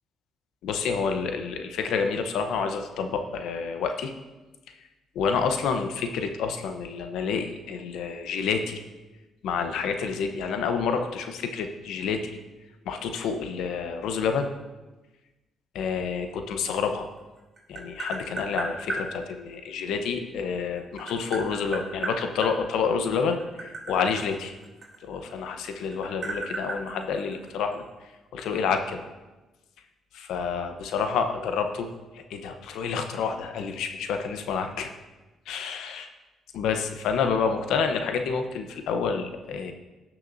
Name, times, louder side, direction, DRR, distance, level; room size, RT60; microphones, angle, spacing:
voice 1, 0.6-4.1 5.1-8.8 9.4-12.4 12.9-14.5 15.7-17.1 17.7-24.5 25.0-27.8 28.3-29.1 30.1-31.9 32.1-34.9 35.5-36.1 36.5-39.7, left 5 dB, 85° left, 6 dB, 0.8 m, -28 dB
Tap, 17.2-19.0 20.4-22.5 23.3-25.4 25.7-27.7, right 2 dB, 40° right, 2.9 m, -34 dB
17.5 x 6.0 x 2.7 m, 1.1 s
cardioid pair, 90°, 0 cm